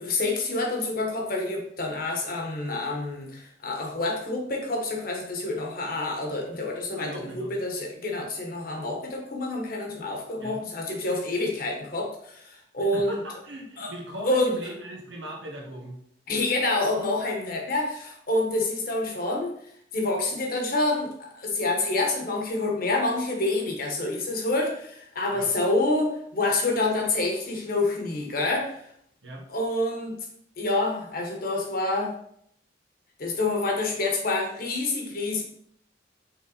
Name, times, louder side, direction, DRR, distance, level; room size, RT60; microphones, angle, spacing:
voice 1, 0.0-13.2 13.8-13.9 14.2-14.6 16.3-19.5 19.9-28.8 29.5-30.2 30.6-32.1 33.2-35.4, left 2 dB, 55° left, 1 dB, 1.4 m, -27 dB
voice 2, 6.9-7.5 10.4-10.6 12.8-16.0 25.3-25.5 29.2-29.4, right 1 dB, 90° right, 0 dB, 1.5 m, -39 dB
6.0 x 4.0 x 4.0 m, 0.69 s
head